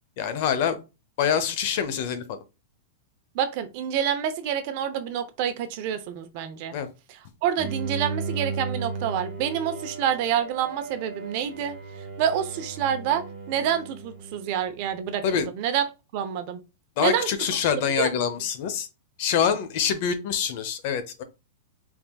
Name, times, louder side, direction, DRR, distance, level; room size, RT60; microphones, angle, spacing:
voice 1, 0.2-0.8 1.2-2.4 6.7-6.9 15.2-15.5 17.0-18.9 19.2-21.2, left 7 dB, 50° left, 0.8 m, -25 dB
voice 2, 3.3-6.8 7.4-11.8 12.2-15.8 16.1-16.6 17.0-17.3 17.8-18.1, right 9 dB, 45° right, 0.7 m, -27 dB
Bowed string instrument, 7.6-14.8, right 4 dB, 15° right, 1.8 m, -35 dB
4.4 x 3.7 x 2.3 m
supercardioid pair, 155°, 0 cm